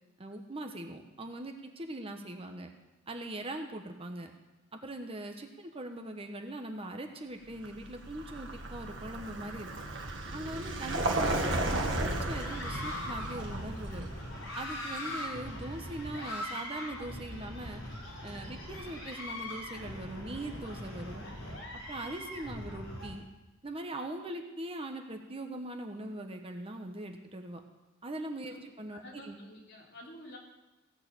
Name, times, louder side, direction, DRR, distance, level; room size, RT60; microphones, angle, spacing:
voice 1, 0.2-2.7 3.1-4.3 4.7-9.7 10.3-14.1 14.5-17.8 18.2-21.2 21.9-23.2 23.6-27.6 28.0-29.4, right 1 dB, 30° right, 4 dB, 1.1 m, -41 dB
Vehicle, 7.5-16.3, right 2 dB, 65° right, 1.8 m, -35 dB
sound 1, 11.0-23.1, left 1 dB, 80° left, 5.0 m, -41 dB
voice 2, 28.9-30.4, left 1 dB, 60° left, -3 dB, 3.5 m, -49 dB
17.0 x 6.7 x 8.3 m, 1.1 s
head